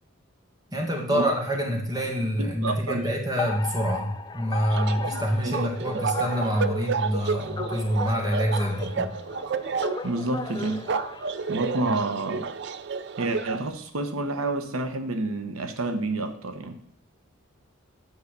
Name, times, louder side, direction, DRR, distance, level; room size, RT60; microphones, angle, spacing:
voice 1, 0.7-9.1 11.9-12.0, equal, 20° right, 1 dB, 1.9 m, -26 dB
voice 2, 2.4-3.1 4.9-5.7 10.0-10.8 11.5-12.5 13.2-16.8, right 2 dB, 90° right, 8 dB, 1.0 m, -29 dB
Alarm, 3.4-11.9, left 4 dB, 20° left, 0.4 m, -37 dB
sound 1, 4.7-13.7, right 5 dB, 55° right, 0.4 m, -31 dB
9.5 x 5.6 x 6.7 m, 0.66 s
head